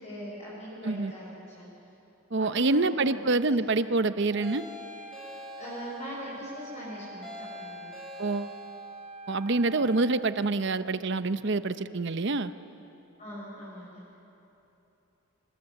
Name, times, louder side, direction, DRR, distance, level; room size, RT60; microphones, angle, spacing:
voice 1, 0.0-1.7 2.4-3.2 5.6-7.3 7.6-7.9 13.2-14.0, equal, 30° left, -7 dB, 6.8 m, -41 dB
voice 2, 2.3-4.6 8.2-8.5 9.3-12.5, right 3 dB, 55° right, 12 dB, 0.7 m, -26 dB
Wind instrument woodwind instrument, 4.3-10.3, right 2 dB, 25° right, 1.0 m, -45 dB
sound 1, 4.4-6.2 7.2-9.0, left 4 dB, 5° left, 4.2 m, -46 dB
25.5 x 22.0 x 8.1 m, 3.0 s
head